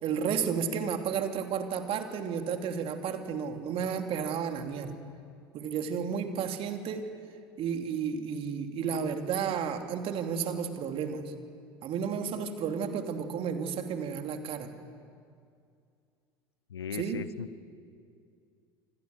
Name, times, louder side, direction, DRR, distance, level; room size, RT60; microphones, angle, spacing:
voice 1, 0.0-4.9 5.5-7.0 7.6-11.3 11.8-14.7 16.9-17.2, right 7 dB, 45° right, 5 dB, 2.8 m, -32 dB
voice 2, 16.7-17.6, left 8 dB, 80° left, 18 dB, 0.7 m, -38 dB
26.5 x 25.5 x 7.2 m, 2.4 s
figure-of-eight pair, 70°, 13 cm